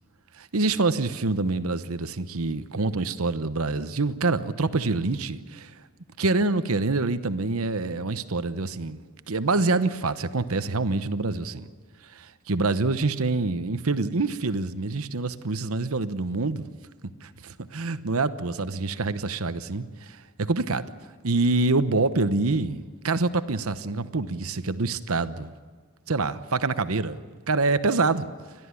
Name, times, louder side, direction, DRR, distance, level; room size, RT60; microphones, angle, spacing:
voice 1, 0.4-5.7 6.2-11.7 12.1-16.7 17.2-20.9 21.2-25.5 26.1-28.3, right 3 dB, 75° right, 1.0 m, -26 dB
29.5 x 12.5 x 9.7 m
head